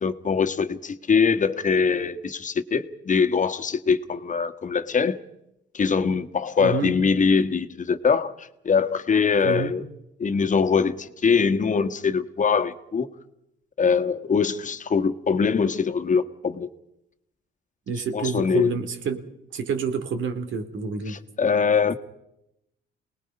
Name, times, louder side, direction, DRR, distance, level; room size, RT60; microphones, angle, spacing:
voice 1, 0.0-5.2 5.7-9.8 10.2-13.1 13.8-16.7 18.1-18.7 21.1-21.9, left 5 dB, 40° left, 8 dB, 1.4 m, -23 dB
voice 2, 6.6-6.9 9.4-9.7 17.9-19.2 19.5-21.2, right 5 dB, 75° right, 8 dB, 2.4 m, -28 dB
28.0 x 19.5 x 5.4 m, 0.84 s
cardioid pair, 90°, 20 cm